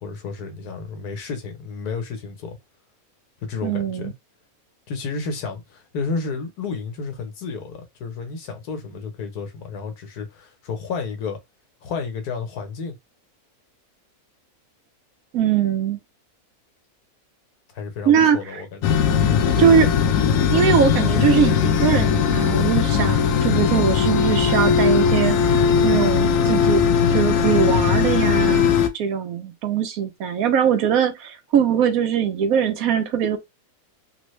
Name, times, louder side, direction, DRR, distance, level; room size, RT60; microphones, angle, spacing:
voice 1, 0.0-2.6 3.4-4.1 4.9-11.4 11.8-13.0 17.7-19.0, left 4 dB, 85° left, 1.5 m, -31 dB
voice 2, 3.6-4.1 15.3-16.0 18.0-18.6 19.6-19.9 20.5-26.8 27.1-33.4, right 8 dB, 75° right, 1.1 m, -21 dB
sound 1, 18.8-28.9, left 7 dB, 70° left, 0.9 m, -19 dB
3.4 x 2.1 x 3.1 m
omnidirectional pair, 1.6 m